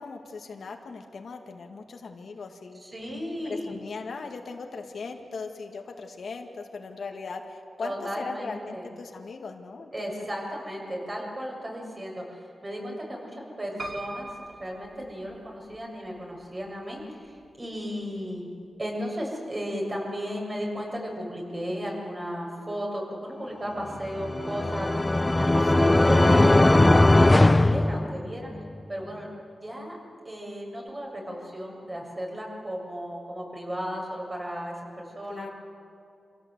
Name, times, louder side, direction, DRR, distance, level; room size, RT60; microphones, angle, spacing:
voice 1, 0.0-2.8 3.4-10.3 25.8-25.9 35.3-35.5, left 4 dB, 70° left, 3 dB, 2.1 m, -39 dB
voice 2, 2.8-3.7 7.8-8.9 9.9-14.3 14.6-18.5 18.8-28.5 28.9-29.3 29.6-30.0 30.3-35.5, equal, 30° right, -2 dB, 7.3 m, -35 dB
Piano, 13.8-15.8 16.4-17.1 17.4-17.5 17.7-17.8, right 1 dB, 45° right, 3.2 m, -41 dB
sound 1, 24.0-28.6, left 2 dB, 20° left, 0.6 m, -19 dB
26.5 x 17.0 x 8.2 m, 2.5 s
cardioid pair, 70°, 0 cm